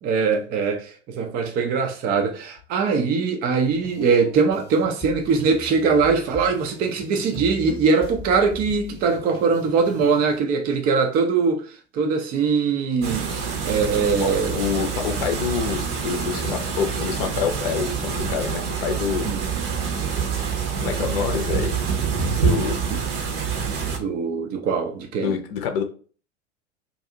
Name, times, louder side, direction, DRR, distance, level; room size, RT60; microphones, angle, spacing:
voice 1, 0.0-11.7 11.9-13.3 13.6-14.6 19.2-19.4 22.9-23.0 24.0-25.3, right 5 dB, 25° right, 0.4 m, -22 dB
sound 1, 3.6-10.4, left 3 dB, 15° left, 0.8 m, -40 dB
sound 2, 13.0-24.0, right 6 dB, 50° right, 0.8 m, -26 dB
voice 2, 14.1-19.3 20.8-21.7 22.4-22.8 25.2-25.8, left 7 dB, 55° left, 0.6 m, -27 dB
2.5 x 2.3 x 2.7 m
figure-of-eight pair, 85°, 35 cm